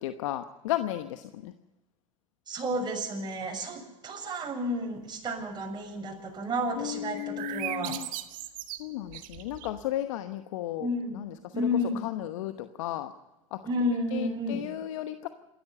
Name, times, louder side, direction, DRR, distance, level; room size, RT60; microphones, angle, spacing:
voice 1, 0.0-1.5 6.8-8.1 8.8-10.9 11.1-11.7 12.0-13.1 13.5-13.6 14.1-15.3, left 13 dB, 70° left, 9 dB, 1.0 m, -34 dB
voice 2, 2.5-8.1 10.8-11.2 11.5-12.1 13.6-14.7, equal, 25° right, 1 dB, 6.8 m, -31 dB
sound 1, 7.1-9.8, right 14 dB, 50° right, 1.9 m, -38 dB
28.0 x 13.5 x 6.9 m, 1.0 s
hypercardioid pair, 80°, 17 cm